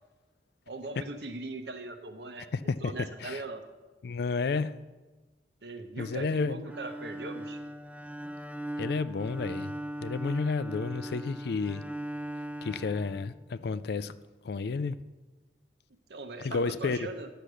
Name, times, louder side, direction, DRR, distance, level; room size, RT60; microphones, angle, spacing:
voice 1, 0.7-3.6 5.6-7.6 16.1-17.3, right 3 dB, 65° right, 1.0 m, -40 dB
voice 2, 2.5-2.9 3.2-3.4 4.0-4.7 6.0-6.6 8.8-9.8 10.0-11.8 12.6-14.1 14.4-15.0 16.4-17.1, left 4 dB, 60° left, 0.4 m, -31 dB
Bowed string instrument, 6.6-13.8, right 1 dB, 10° right, 0.3 m, -39 dB
10.0 x 6.8 x 6.2 m
head